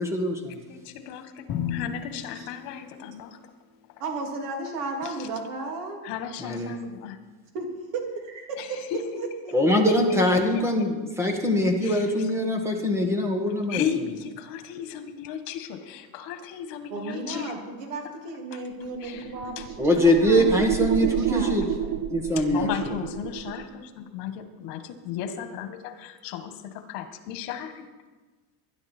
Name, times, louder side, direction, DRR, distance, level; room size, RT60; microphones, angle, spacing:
voice 1, 0.0-0.6 6.4-6.7 9.5-13.8 19.8-21.6 22.1-22.7, left 1 dB, 5° right, 3 dB, 1.4 m, -23 dB
voice 2, 0.7-3.4 5.0-5.3 6.0-7.2 8.6-9.0 11.8-12.3 13.7-17.6 18.5-18.6 19.0-19.7 22.4-27.9, left 9 dB, 70° left, 8 dB, 1.8 m, -35 dB
Drum, 1.5-3.5, left 8 dB, 45° left, 1.8 m, -34 dB
voice 3, 4.0-6.0 7.5-7.7 7.9-8.6 8.9-9.5 16.9-21.9, right 3 dB, 65° right, 2 dB, 3.2 m, -34 dB
sound 1, 18.8-23.7, right 11 dB, 35° right, 0.6 m, -30 dB
20.5 x 11.0 x 4.5 m, 1.3 s
cardioid pair, 170°, 49 cm